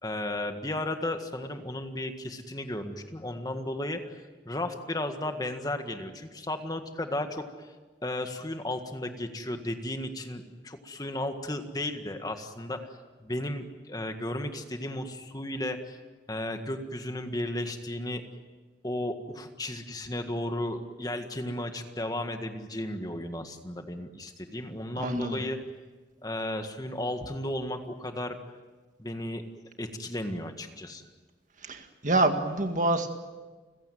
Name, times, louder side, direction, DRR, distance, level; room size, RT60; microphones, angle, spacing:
voice 1, 0.0-4.1 4.4-7.7 8.0-12.9 13.2-16.0 16.3-18.2 18.8-25.6 26.2-28.4 29.0-29.4 29.8-31.0, left 1 dB, 20° left, 6 dB, 1.7 m, -34 dB
voice 2, 25.0-25.4 31.6-33.1, right 2 dB, 45° right, 6 dB, 2.0 m, -26 dB
30.0 x 16.5 x 9.3 m, 1.3 s
head